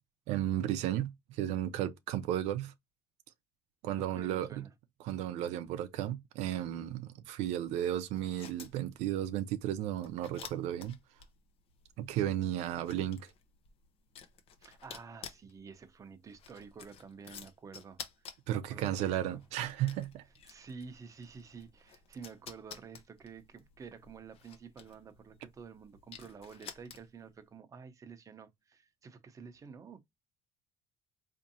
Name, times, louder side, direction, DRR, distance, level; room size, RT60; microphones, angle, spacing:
voice 1, 0.3-2.7 3.8-4.7 5.0-11.0 12.0-13.3 18.5-20.2, right 11 dB, 80° right, 0.5 m, -34 dB
voice 2, 4.0-4.7 14.6-19.4 20.4-30.0, right 5 dB, 30° right, 0.8 m, -50 dB
sound 1, 8.1-27.3, left 7 dB, 60° left, 0.9 m, -53 dB
4.3 x 2.7 x 2.6 m
cardioid pair, 125°, 11 cm